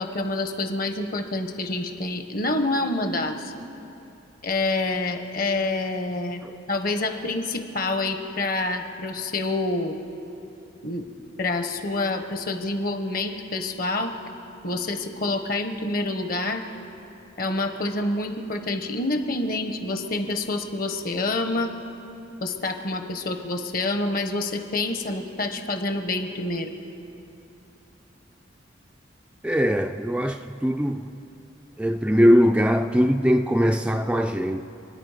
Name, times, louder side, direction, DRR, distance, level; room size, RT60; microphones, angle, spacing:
voice 1, 0.0-3.5 4.4-6.4 6.7-10.0 10.8-11.1 11.4-14.2 14.6-16.7 17.4-21.7 22.4-26.7, left 2 dB, 50° left, 1.2 m, -27 dB
voice 2, 29.4-31.2 31.8-34.6, equal, 5° right, 0.3 m, -21 dB
28.5 x 9.7 x 5.0 m
head